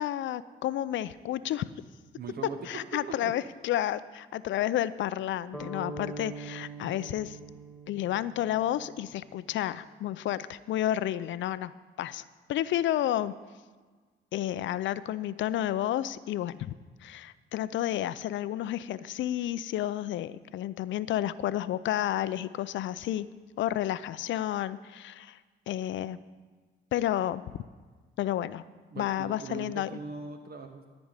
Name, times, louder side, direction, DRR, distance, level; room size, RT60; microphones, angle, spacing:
voice 1, 0.0-1.7 2.7-7.4 7.9-11.7 12.0-12.2 12.5-13.3 14.3-16.7 17.0-23.3 23.6-25.4 25.7-26.2 26.9-27.4 28.2-28.6 29.0-29.9, left 12 dB, 70° left, 16 dB, 0.5 m, -31 dB
voice 2, 2.2-3.3 28.9-30.9, right 5 dB, 50° right, 6 dB, 0.9 m, -40 dB
sound 1, 5.5-9.5, right 2 dB, 5° right, 2.1 m, -43 dB
13.5 x 5.3 x 8.9 m, 1.4 s
cardioid pair, 90°, 20 cm